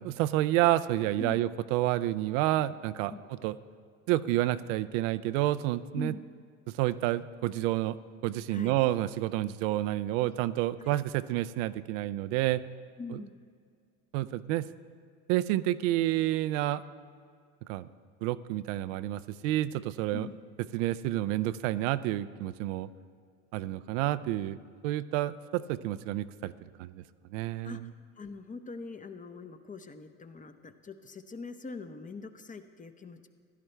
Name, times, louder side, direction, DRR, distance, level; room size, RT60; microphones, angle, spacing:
voice 1, 0.0-3.1 3.4-3.6 4.1-6.1 6.7-8.0 8.2-12.6 13.1-13.2 14.1-14.7 15.3-16.8 17.7-17.9 18.2-20.3 20.7-22.9 23.5-24.6 24.8-26.5 26.8-27.0 27.3-27.9, right 15 dB, 75° right, 13 dB, 0.5 m, -29 dB
voice 2, 13.0-13.4 20.1-20.4 27.6-27.8 28.2-33.3, left 4 dB, 20° left, 9 dB, 0.7 m, -42 dB
15.5 x 11.0 x 3.3 m, 2.2 s
hypercardioid pair, 80°, 37 cm